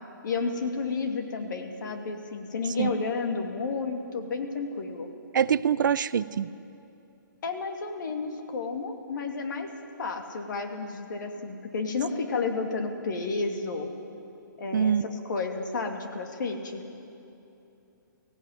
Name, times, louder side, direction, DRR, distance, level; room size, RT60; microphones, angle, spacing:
voice 1, 0.2-5.1 7.4-9.7 10.0-13.9 14.6-16.8, left 4 dB, 65° left, 4 dB, 2.6 m, -31 dB
voice 2, 5.3-6.5 14.7-15.0, right 8 dB, 65° right, 17 dB, 0.6 m, -24 dB
17.5 x 16.0 x 9.4 m, 2.8 s
hypercardioid pair, 140°, 11 cm